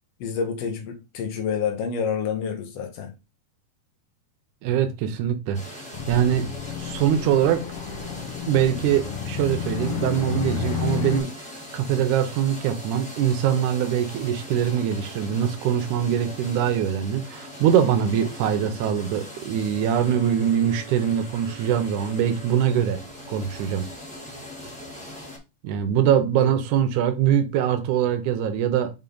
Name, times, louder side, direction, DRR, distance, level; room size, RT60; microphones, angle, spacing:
voice 1, 0.2-3.1 26.4-26.5, left 6 dB, 80° left, 1.4 m, -28 dB
voice 2, 4.6-5.6 6.1-6.5 6.8-7.6 8.5-11.3 11.7-23.0 23.3-23.9 25.6-28.9, right 9 dB, 75° right, 1.8 m, -23 dB
sound 1, 5.5-25.4, left 1 dB, 10° left, 0.3 m, -40 dB
sound 2, 5.9-11.2, left 8 dB, 60° left, 1.5 m, -31 dB
5.5 x 4.9 x 3.9 m
omnidirectional pair, 4.4 m